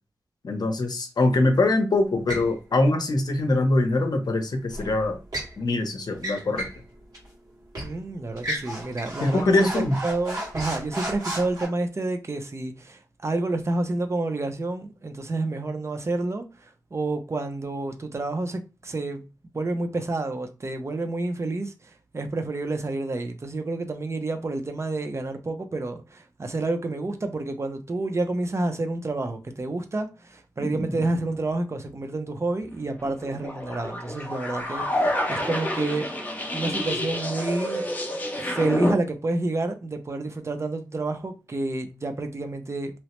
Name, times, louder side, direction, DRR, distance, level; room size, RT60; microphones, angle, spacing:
voice 1, 0.4-5.2 5.6-6.7 9.2-10.0, left 2 dB, 65° left, 0.6 m, -23 dB
sound 1, 2.3-2.5 4.7-5.5 6.1-6.8 7.1-7.3 7.7-7.9 8.4-11.6, right 1 dB, 55° right, 1.7 m, -33 dB
voice 2, 7.8-16.5 16.9-19.2 19.5-21.7 22.1-36.1 36.5-37.8 38.4-42.9, right 2 dB, 40° right, 0.5 m, -29 dB
sound 2, 30.6-31.4 33.0-38.9, left 1 dB, 25° left, 0.7 m, -29 dB
3.0 x 2.0 x 2.9 m
wide cardioid pair, 100°, 7 cm